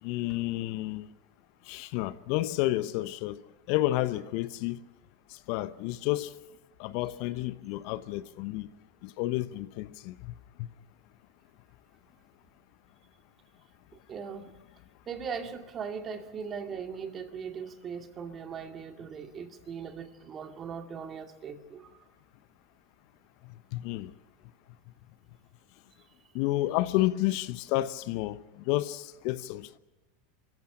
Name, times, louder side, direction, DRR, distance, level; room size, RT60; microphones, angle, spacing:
voice 1, 0.0-1.1 1.6-3.4 3.7-4.8 5.3-6.4 6.8-8.7 9.0-10.7 23.7-24.1 26.3-29.8, left 16 dB, 55° left, 0.9 m, -31 dB
voice 2, 14.1-14.5 15.1-22.0, right 6 dB, 35° right, 2.3 m, -39 dB
27.0 x 15.0 x 8.6 m
hypercardioid pair, 90°, 0 cm